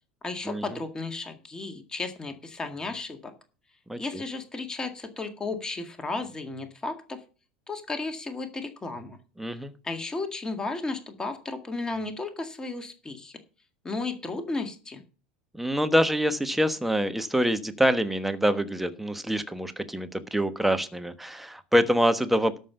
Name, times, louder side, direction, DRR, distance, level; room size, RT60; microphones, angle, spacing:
voice 1, 0.2-3.3 4.0-7.2 7.7-9.2 9.8-13.3 13.8-15.0, left 3 dB, 15° left, 6 dB, 1.9 m, -34 dB
voice 2, 3.9-4.2 9.4-9.7 15.5-22.6, equal, 5° right, 10 dB, 1.3 m, -25 dB
13.0 x 5.5 x 7.0 m, 0.36 s
figure-of-eight pair, 75°, 4 cm